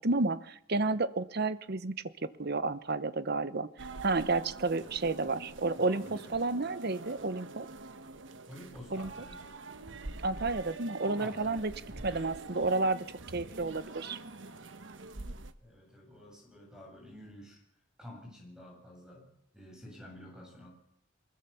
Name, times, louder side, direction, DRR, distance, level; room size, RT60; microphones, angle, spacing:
voice 1, 0.0-1.9 2.2-3.7 4.0-6.0 6.3-7.7 8.9-9.1 10.2-11.7 12.0-13.0 13.3-14.2, right 3 dB, 55° right, 14 dB, 1.0 m, -31 dB
sound 1, 3.8-15.5, right 3 dB, 70° right, 1.2 m, -46 dB
voice 2, 4.8-5.5 5.8-6.4 8.5-9.5 11.0-12.3 15.6-17.6 18.0-20.7, left 1 dB, 5° right, 0 dB, 7.8 m, -50 dB
23.0 x 21.0 x 7.1 m, 0.74 s
head